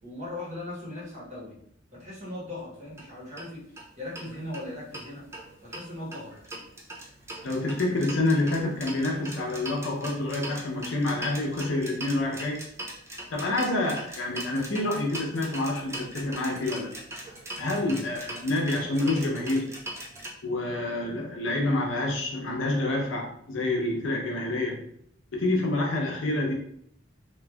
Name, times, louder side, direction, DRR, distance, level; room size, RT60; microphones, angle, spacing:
voice 1, 0.0-1.6 1.9-5.3 5.6-6.3 17.9-18.0, left 1 dB, 40° right, -6 dB, 1.2 m, -39 dB
sound 1, 2.9-3.0 3.4-3.5 3.8-3.9 4.1-5.0 5.3-20.3, right 1 dB, 15° right, 0.5 m, -40 dB
voice 2, 7.4-12.6 13.3-16.9 17.6-19.7 20.4-24.8 25.3-26.5, left 2 dB, 80° left, 0 dB, 0.7 m, -27 dB
3.0 x 2.6 x 2.3 m, 0.67 s
head